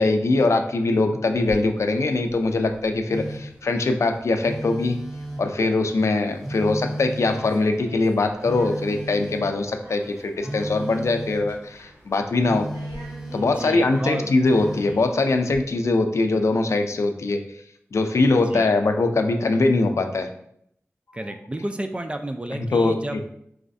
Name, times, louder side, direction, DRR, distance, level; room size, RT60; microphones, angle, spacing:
voice 1, 0.0-5.0 5.4-12.7 13.3-17.4 17.9-20.3 22.5-23.0, left 3 dB, 75° left, 5 dB, 0.4 m, -22 dB
sound 1, 1.3-15.6, equal, 75° right, 1.5 m, -46 dB
Telephone, 3.1-3.6 4.4-5.6 6.4-7.6 8.4-9.6 10.4-11.5 12.4-13.7 14.4-15.0, right 1 dB, ahead, 0.8 m, -34 dB
voice 2, 13.4-14.3 18.2-18.7 21.1-23.2, right 1 dB, 20° right, 6 dB, 0.4 m, -32 dB
4.8 x 3.1 x 2.6 m, 0.71 s
wide cardioid pair, 50°, 5 cm